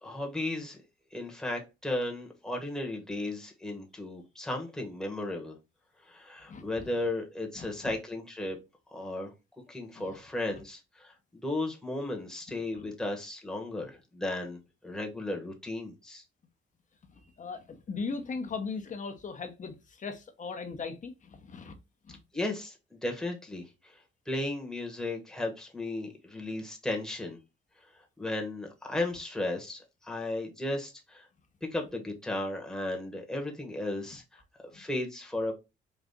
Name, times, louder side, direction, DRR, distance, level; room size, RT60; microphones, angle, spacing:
voice 1, 0.0-0.8 1.1-5.5 6.1-8.6 8.9-9.3 9.7-16.2 22.3-24.0 24.3-27.4 28.2-31.3 31.6-34.2 34.7-35.5, left 2 dB, 5° left, 1.1 m, -35 dB
voice 2, 6.5-6.8 7.6-7.9 9.9-10.2 12.7-12.8 17.1-21.7 22.1-22.2 34.7-34.8, left 4 dB, 40° left, 0.8 m, -39 dB
4.1 x 2.4 x 3.5 m
cardioid pair, 90°, 20 cm